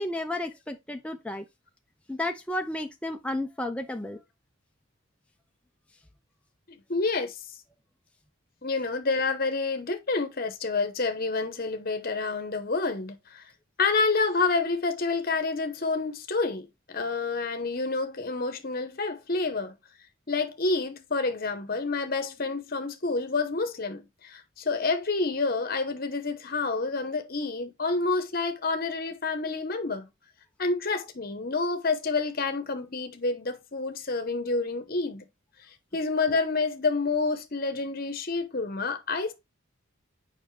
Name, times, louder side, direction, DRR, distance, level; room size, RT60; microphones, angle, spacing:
voice 1, 0.0-1.4 2.1-4.2, left 1 dB, 5° left, 0.5 m, -32 dB
voice 2, 6.9-7.4 8.6-13.4 13.8-19.7 20.3-30.1 30.6-35.2 35.9-39.3, left 3 dB, 45° left, 0.9 m, -28 dB
7.1 x 5.3 x 3.2 m
head